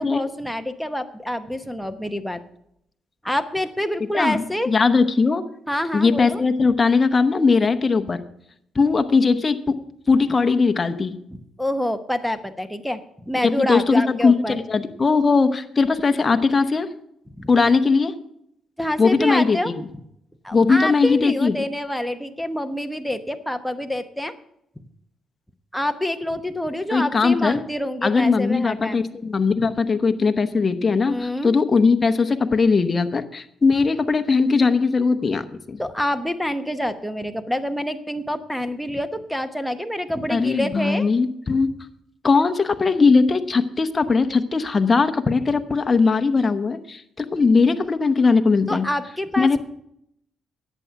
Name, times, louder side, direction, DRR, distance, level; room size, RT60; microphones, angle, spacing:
voice 1, 0.0-2.4 3.2-4.7 5.7-6.4 11.6-14.6 17.4-17.5 18.8-19.7 20.4-24.3 25.7-29.0 31.1-31.5 35.8-41.1 48.7-49.6, left 1 dB, ahead, 7 dB, 0.9 m, -27 dB
voice 2, 4.1-5.4 5.9-8.2 8.7-9.8 10.1-11.2 13.4-16.9 17.5-18.1 19.0-19.8 20.5-21.6 26.9-27.6 28.0-35.8 40.3-41.7 42.2-48.9 49.4-49.6, left 4 dB, 30° left, 8 dB, 0.9 m, -19 dB
11.0 x 8.3 x 5.9 m, 0.74 s
cardioid pair, 90°, 0 cm